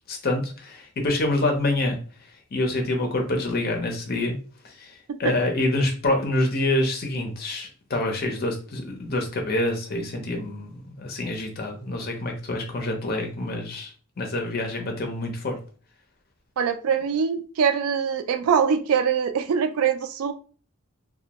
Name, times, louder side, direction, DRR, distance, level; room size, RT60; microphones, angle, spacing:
voice 1, 0.1-2.0 2.5-4.4 4.6-4.9 5.2-15.6, left 1 dB, 45° left, 2 dB, 0.6 m, -26 dB
voice 2, 16.6-20.3, right 7 dB, 80° right, 9 dB, 0.3 m, -23 dB
2.2 x 2.1 x 2.8 m, 0.39 s
head